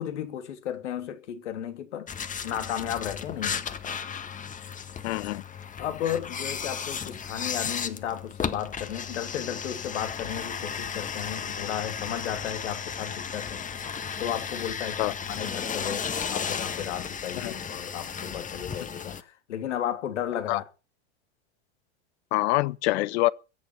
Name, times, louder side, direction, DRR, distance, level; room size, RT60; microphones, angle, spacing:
voice 1, 0.0-2.1 2.4-4.0 5.8-13.6 14.2-20.6, left 10 dB, 85° left, 3.1 m, -34 dB
sound 1, 2.1-19.2, left 7 dB, 20° left, 1.6 m, -34 dB
voice 2, 5.0-5.4 15.0-15.1 17.4-17.5 20.5-20.6 22.3-23.3, left 18 dB, 65° left, 1.1 m, -25 dB
22.0 x 8.2 x 6.0 m
hypercardioid pair, 105°, 34 cm